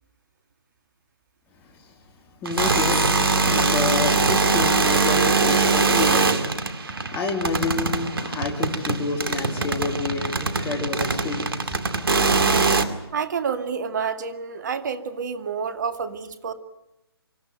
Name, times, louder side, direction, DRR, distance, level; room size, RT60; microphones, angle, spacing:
voice 1, 2.4-6.4 7.1-11.8, left 3 dB, 15° left, 1 dB, 3.2 m, -29 dB
sound 1, 2.5-12.8, right 4 dB, 65° right, 2.5 m, -22 dB
voice 2, 13.1-16.5, right 6 dB, 45° right, 8 dB, 2.3 m, -28 dB
26.5 x 14.0 x 9.2 m, 0.94 s
figure-of-eight pair, 145°, 13 cm